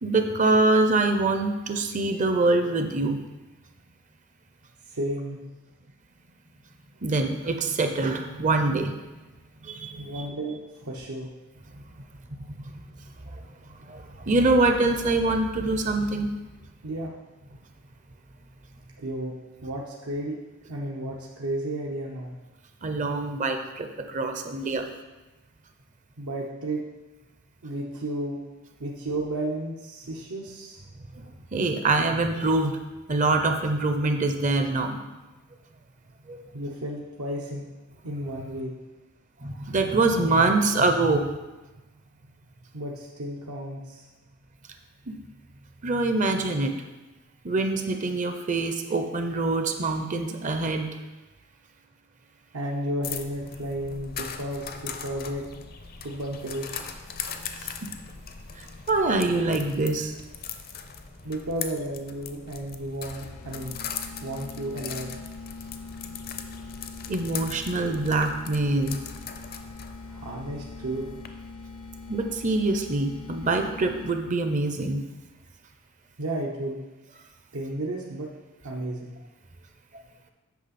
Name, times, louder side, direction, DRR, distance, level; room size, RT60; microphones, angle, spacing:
voice 1, 0.0-3.2 7.0-9.0 9.6-10.2 12.7-12.8 13.3-13.4 13.8-16.3 22.8-24.9 31.2-32.7 33.1-35.0 36.3-36.4 39.4-41.3 45.1-45.2 45.8-46.7 47.4-50.9 57.6-57.7 58.6-60.1 67.1-69.0 72.1-75.0 79.9-80.0, right 2 dB, 35° right, 6 dB, 0.5 m, -24 dB
voice 2, 4.9-5.4 10.0-11.3 16.8-17.2 19.0-19.3 19.6-20.4 20.6-22.3 26.2-26.8 27.6-28.4 28.8-30.8 36.5-37.6 38.0-38.7 42.7-44.1 52.5-55.4 56.0-57.0 61.2-63.8 64.2-65.1 70.1-71.0 76.2-76.8 77.5-78.3 78.6-79.1, right 1 dB, 80° right, -2 dB, 0.9 m, -33 dB
sound 1, 53.0-71.3, left 7 dB, 40° left, 0.5 m, -40 dB
sound 2, 63.0-74.4, left 3 dB, 75° left, 0.7 m, -43 dB
8.3 x 5.8 x 4.2 m, 1.1 s
head